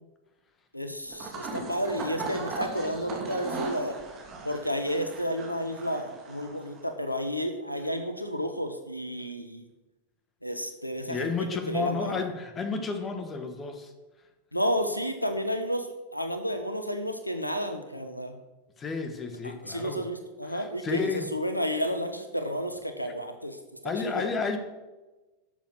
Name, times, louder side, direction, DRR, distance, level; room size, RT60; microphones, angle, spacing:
voice 1, 0.7-4.0 4.4-9.6 10.4-11.3 11.7-12.3 14.5-18.4 19.4-21.0 21.3-23.6 24.1-24.3, equal, 90° left, 7 dB, 1.1 m, -31 dB
sound 1, 1.1-6.9, right 3 dB, 30° right, 2.9 m, -38 dB
voice 2, 11.1-13.9 18.8-20.0 20.5-21.3 23.0-23.1 23.8-24.6, left 4 dB, 20° left, 6 dB, 1.7 m, -32 dB
13.0 x 7.3 x 6.1 m, 1.1 s
figure-of-eight pair, 90°, 0 cm